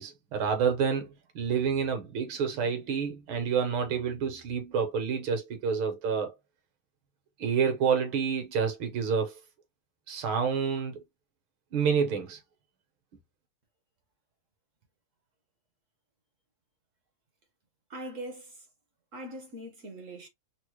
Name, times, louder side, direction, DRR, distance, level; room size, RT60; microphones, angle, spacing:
voice 1, 0.0-6.4 7.4-9.3 10.1-11.0 11.7-12.4, right 6 dB, 75° right, 1.8 m, -28 dB
voice 2, 17.9-18.5 19.1-20.3, right 1 dB, 55° right, 0.9 m, -41 dB
4.2 x 2.1 x 3.0 m
omnidirectional pair, 2.3 m